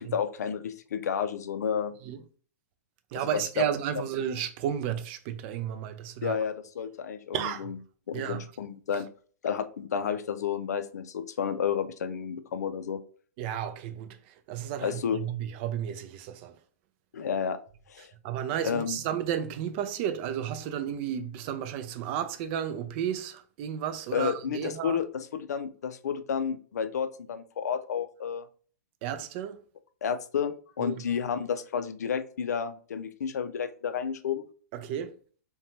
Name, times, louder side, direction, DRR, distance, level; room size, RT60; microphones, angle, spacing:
voice 1, 0.0-1.9 3.1-3.6 6.2-7.8 8.1-9.1 9.4-13.0 14.8-15.2 17.1-17.6 17.9-18.1 18.6-19.0 24.1-28.5 30.0-34.5, left 7 dB, 80° left, 0.4 m, -31 dB
voice 2, 3.1-6.4 7.3-7.7 8.1-8.4 13.4-16.5 18.2-25.0 29.0-29.6 30.8-31.0 34.7-35.1, right 9 dB, 40° right, 0.4 m, -33 dB
2.6 x 2.2 x 2.9 m
hypercardioid pair, 125°, 9 cm